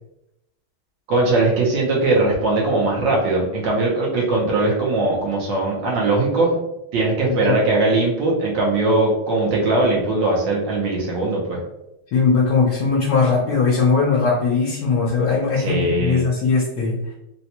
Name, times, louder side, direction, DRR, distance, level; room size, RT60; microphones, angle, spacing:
voice 1, 1.1-6.6 6.9-11.6 15.6-16.2, right 2 dB, 70° right, -4 dB, 1.4 m, -20 dB
voice 2, 12.1-17.0, left 4 dB, 65° left, -4 dB, 1.2 m, -19 dB
4.0 x 2.2 x 2.8 m, 0.89 s
omnidirectional pair, 2.2 m